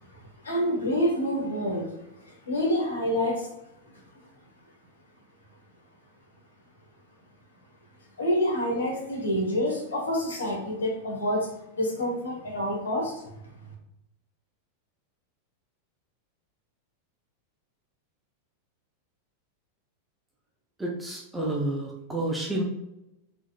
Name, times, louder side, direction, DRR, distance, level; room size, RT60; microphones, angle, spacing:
voice 1, 0.4-1.8 2.3-3.5 8.2-11.5 11.7-13.2, equal, 70° left, 0 dB, 1.4 m, -27 dB
voice 2, 20.8-22.6, right 1 dB, 10° right, -3 dB, 0.8 m, -30 dB
4.7 x 3.7 x 2.4 m, 0.88 s
figure-of-eight pair, 90°, 0 cm